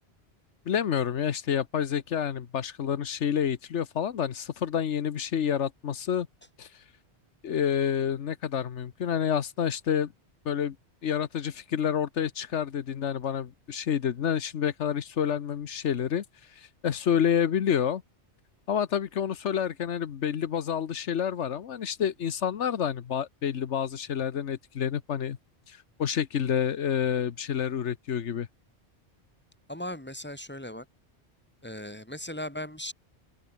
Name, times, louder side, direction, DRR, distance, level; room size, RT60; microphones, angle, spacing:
voice 1, 0.7-6.3 6.6-6.7 7.4-10.1 10.4-10.8 11.0-16.2 16.6-18.0 18.7-25.4 25.7-28.5, left 8 dB, 85° left, 1.3 m, -28 dB
voice 2, 29.7-30.8 31.6-32.9, left 1 dB, 10° left, 3.3 m, -37 dB
open air
omnidirectional pair, 1.2 m